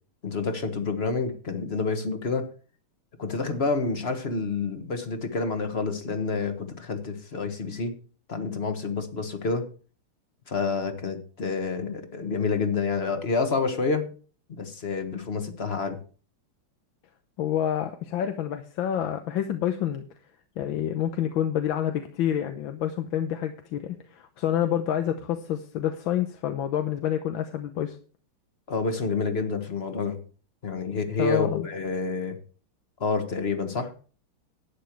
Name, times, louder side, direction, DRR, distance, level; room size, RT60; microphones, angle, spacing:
voice 1, 0.2-2.5 3.2-8.0 8.3-9.7 10.5-14.1 14.5-16.0 28.7-30.2 30.6-32.4 33.0-33.9, left 4 dB, 35° left, 7 dB, 1.4 m, -28 dB
voice 2, 17.4-20.0 20.6-28.0 31.2-31.7, left 10 dB, 70° left, 7 dB, 1.6 m, -28 dB
11.5 x 9.1 x 4.6 m, 0.40 s
omnidirectional pair, 2.4 m